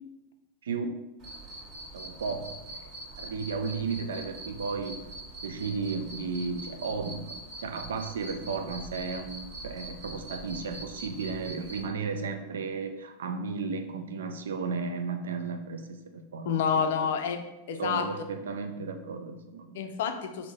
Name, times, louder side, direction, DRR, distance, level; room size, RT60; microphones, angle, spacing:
voice 1, 0.6-1.0 1.9-5.0 5.4-16.6 17.8-19.8, right 4 dB, 65° right, 7 dB, 0.3 m, -34 dB
Cricket, 1.2-11.9, right 2 dB, 40° right, 1.1 m, -43 dB
voice 2, 16.4-17.4 17.7-18.0 19.7-20.5, left 7 dB, 55° left, 6 dB, 0.4 m, -28 dB
3.5 x 2.6 x 4.1 m, 0.97 s
figure-of-eight pair, 90°, 0 cm